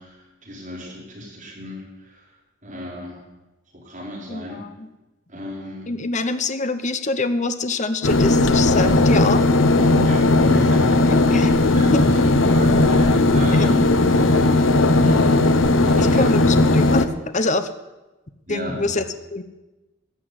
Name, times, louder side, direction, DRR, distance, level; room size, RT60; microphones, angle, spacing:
voice 1, 0.0-2.3 2.6-3.2 3.7-4.7 5.3-5.9 10.0-13.8 15.0-15.5 15.8-16.3 18.5-19.0, equal, 35° right, -3 dB, 5.0 m, -34 dB
voice 2, 4.3-4.9 5.9-9.4 11.1-11.5 11.7-12.0 13.5-13.8 16.0-17.7 18.5-19.0 19.3-19.4, left 3 dB, 35° left, 10 dB, 0.9 m, -25 dB
sound 1, 8.0-17.1, left 2 dB, 65° left, 1.0 m, -16 dB
15.0 x 7.2 x 9.7 m, 1.1 s
head